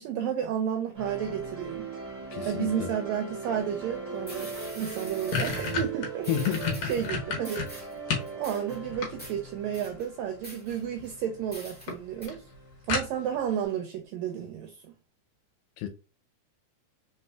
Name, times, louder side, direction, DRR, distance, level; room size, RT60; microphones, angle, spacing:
voice 1, 0.0-1.9 2.5-4.5 4.8-6.5 6.9-7.7 8.3-12.5 12.9-14.9, right 9 dB, 80° right, 1.7 m, -32 dB
sound 1, 1.0-13.1, right 5 dB, 15° right, 2.0 m, -40 dB
voice 2, 2.3-2.9 6.3-6.8 15.8-15.9, left 10 dB, 90° left, 2.1 m, -30 dB
sound 2, 3.9-4.0 4.3-5.8 6.2-7.1 7.4-8.0 8.3-8.8 9.2-9.4 9.7-10.1 10.4-11.2 11.5-11.9 12.2-12.3, equal, 5° left, 1.1 m, -45 dB
sound 3, 4.5-4.6 4.9-8.3 8.7-9.6 10.7-11.1 11.5-11.6 11.9-12.0 12.3-12.4 12.9-13.5, left 5 dB, 65° left, 2.1 m, -31 dB
4.2 x 4.2 x 2.2 m
omnidirectional pair, 3.5 m